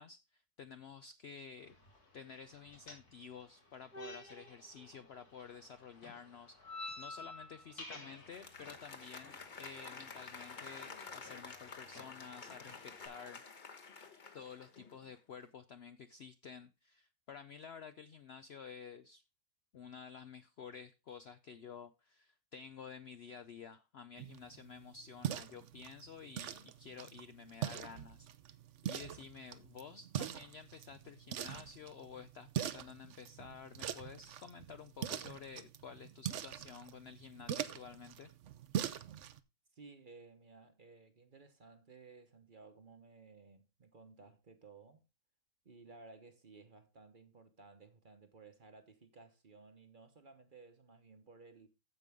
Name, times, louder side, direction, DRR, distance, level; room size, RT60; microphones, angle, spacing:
voice 1, 0.0-1.8 2.1-13.4 14.3-19.2 19.7-28.3 28.8-38.3, left 6 dB, 60° left, 0.7 m, -52 dB
sound 1, 1.6-13.1, left 2 dB, 80° left, 3.4 m, -53 dB
Applause, 8.1-15.1, left 4 dB, 35° left, 1.1 m, -50 dB
sound 2, 24.2-39.4, right 10 dB, 60° right, 0.9 m, -43 dB
voice 2, 39.7-45.0 45.6-51.7, right 4 dB, 35° right, 1.1 m, -58 dB
15.0 x 5.4 x 3.5 m
omnidirectional pair, 1.6 m